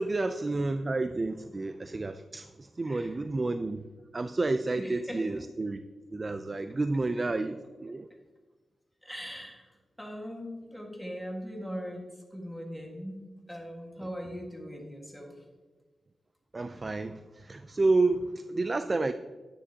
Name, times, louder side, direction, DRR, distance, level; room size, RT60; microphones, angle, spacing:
voice 1, 0.0-5.8 6.1-8.1 14.0-14.1 16.5-19.1, right 3 dB, 30° right, 10 dB, 0.3 m, -30 dB
voice 2, 4.8-5.4 9.0-9.7 10.0-15.3, equal, ahead, 0 dB, 1.6 m, -40 dB
9.9 x 9.6 x 2.8 m, 1.3 s
wide cardioid pair, 120°, 0 cm